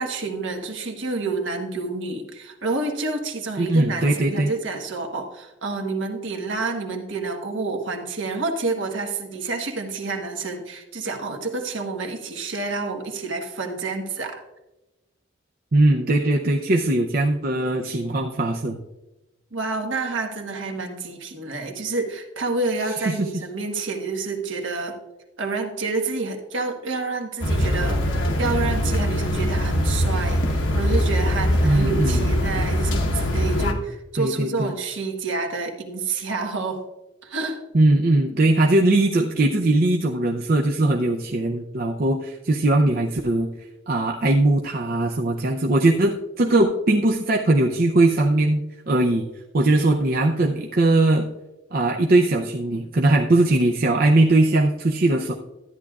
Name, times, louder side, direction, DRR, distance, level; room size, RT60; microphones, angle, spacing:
voice 1, 0.0-14.4 19.5-25.0 25.4-36.8 37.2-37.6 38.3-38.5, right 3 dB, 70° right, 2 dB, 1.4 m, -28 dB
voice 2, 3.6-4.5 15.7-18.8 23.1-23.3 31.6-32.2 34.2-34.7 37.7-43.5 43.9-49.3 49.5-51.3 51.7-55.3, right 2 dB, 45° right, 1 dB, 0.6 m, -20 dB
sound 1, 27.4-33.7, equal, 70° left, 1.1 m, -22 dB
13.0 x 9.9 x 2.4 m, 1.0 s
head